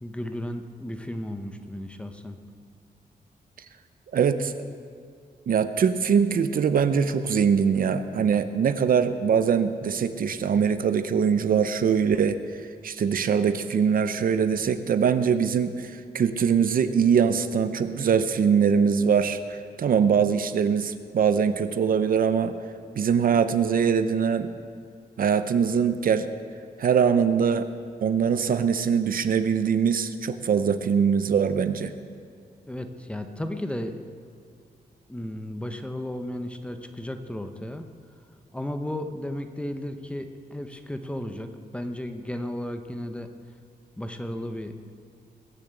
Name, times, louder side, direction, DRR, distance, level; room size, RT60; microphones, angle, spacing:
voice 1, 0.0-2.4 32.7-34.0 35.1-37.9 38.5-43.3 44.0-44.7, left 1 dB, 5° left, 7 dB, 0.8 m, -34 dB
voice 2, 4.1-4.6 5.5-12.4 12.8-22.5 23.0-24.5 25.2-26.3 26.8-27.7 28.0-31.9, right 7 dB, 60° right, 11 dB, 0.7 m, -22 dB
21.5 x 7.2 x 8.1 m, 2.3 s
wide cardioid pair, 170°, 16 cm